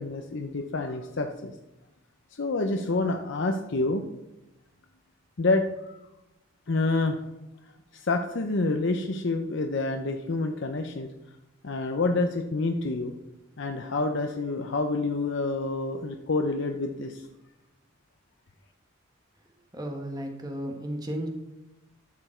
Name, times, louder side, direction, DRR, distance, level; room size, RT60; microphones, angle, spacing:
voice 1, 0.0-1.5 2.4-4.1 5.4-6.0 6.7-7.2 7.9-11.1 11.6-13.1 13.6-17.3, left 3 dB, 60° left, 4 dB, 0.6 m, -28 dB
voice 2, 19.5-21.3, right 1 dB, 20° right, 3 dB, 1.2 m, -34 dB
12.0 x 6.9 x 4.4 m, 0.97 s
head